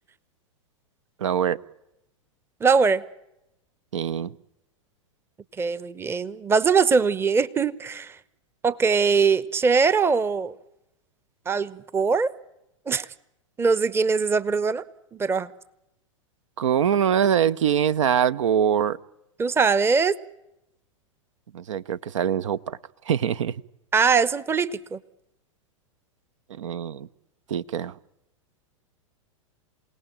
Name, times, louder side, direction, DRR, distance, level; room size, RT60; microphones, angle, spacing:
voice 1, 1.2-1.6 3.9-4.3 16.6-19.0 21.5-22.8 23.0-23.6 26.5-27.1 27.5-28.0, right 9 dB, 70° right, 19 dB, 0.8 m, -23 dB
voice 2, 2.6-3.0 5.6-8.1 8.6-10.5 11.5-12.3 12.9-13.1 13.6-14.8 15.2-15.5 19.4-20.1 23.9-25.0, right 5 dB, 15° right, 19 dB, 0.9 m, -21 dB
28.0 x 18.0 x 8.9 m, 0.88 s
hypercardioid pair, 105°, 17 cm